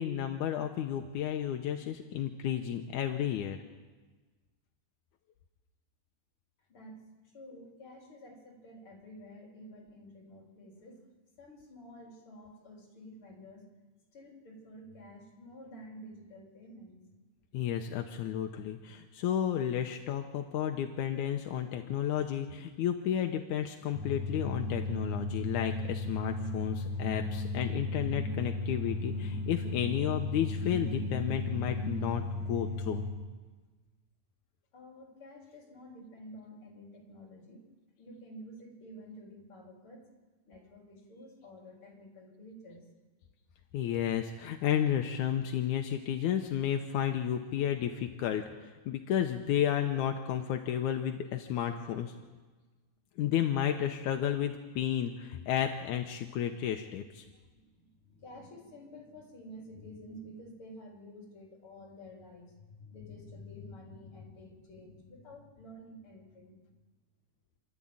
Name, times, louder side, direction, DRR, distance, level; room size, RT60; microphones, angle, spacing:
voice 1, 0.0-3.6 17.5-33.0 43.7-52.1 53.2-57.3, left 10 dB, 80° left, 5 dB, 2.4 m, -32 dB
voice 2, 6.7-11.0 11.4-13.7 14.1-17.0 34.7-37.7 38.0-40.1 40.4-42.9 57.4-66.6, left 1 dB, 45° left, -1 dB, 4.4 m, -50 dB
sound 1, 23.9-33.1, left 2 dB, 10° right, 2.4 m, -35 dB
27.5 x 12.5 x 8.8 m, 1.3 s
omnidirectional pair, 3.4 m